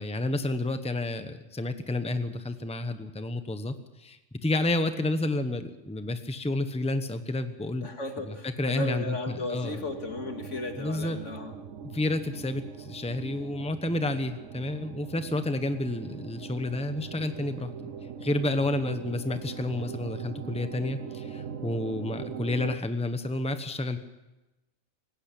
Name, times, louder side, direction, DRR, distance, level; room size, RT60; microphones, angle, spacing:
voice 1, 0.0-7.9 8.3-9.8 10.8-11.2 11.9-17.7 18.2-24.0, left 2 dB, 5° left, 9 dB, 1.0 m, -30 dB
voice 2, 7.8-11.5, left 2 dB, 80° left, 4 dB, 2.6 m, -35 dB
sound 1, 9.6-22.8, right 7 dB, 85° right, 1.4 m, -41 dB
19.0 x 16.5 x 8.5 m, 1.0 s
omnidirectional pair, 1.2 m